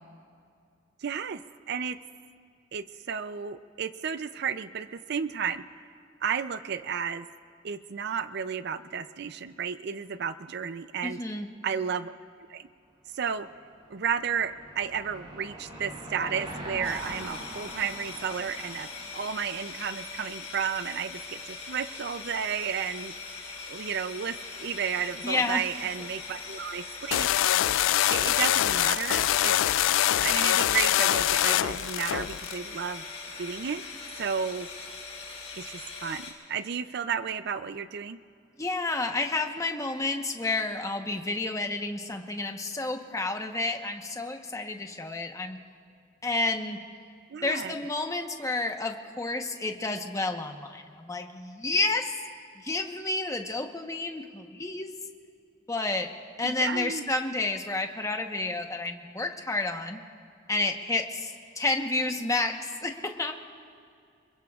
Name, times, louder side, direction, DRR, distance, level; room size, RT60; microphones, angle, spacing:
voice 1, 1.0-1.4 1.7-2.0 2.7-5.6 6.2-7.3 7.6-11.2 11.6-12.1 12.5-12.7 13.1-13.5 13.9-18.9 19.1-23.4 23.7-27.6 28.1-29.5 30.1-33.0 33.4-33.8 34.2-34.7 35.5-38.2 47.3-47.7 56.4-57.1, right 7 dB, 60° right, 12 dB, 0.5 m, -32 dB
voice 2, 11.0-11.5 25.2-25.6 38.6-45.6 46.2-46.8 47.4-52.2 52.6-54.9 55.7-56.1 56.4-60.0 60.5-63.3, left 2 dB, 15° left, 4 dB, 1.0 m, -30 dB
Car passing by / Engine, 13.3-20.2, right 1 dB, 30° right, 4.6 m, -43 dB
sound 1, 16.8-36.3, left 4 dB, 35° left, 3.3 m, -41 dB
sound 2, 27.1-32.6, left 12 dB, 90° left, 0.3 m, -24 dB
27.5 x 22.0 x 2.4 m, 2.3 s
head